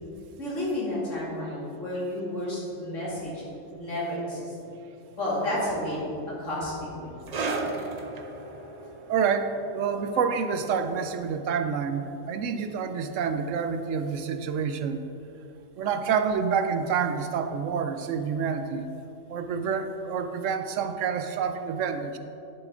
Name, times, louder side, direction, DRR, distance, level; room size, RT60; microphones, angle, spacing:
voice 1, 0.4-3.4 3.8-4.7 5.2-6.1 6.4-7.1, left 1 dB, 65° left, -7 dB, 2.9 m, -31 dB
sound 1, 7.3-14.3 14.5-14.8 15.5-15.6, right 3 dB, 45° right, 0.5 m, -37 dB
voice 2, 9.1-15.0 15.8-18.9 19.3-22.2, right 6 dB, 70° right, 8 dB, 0.9 m, -28 dB
11.0 x 7.1 x 3.7 m, 2.9 s
omnidirectional pair, 1.4 m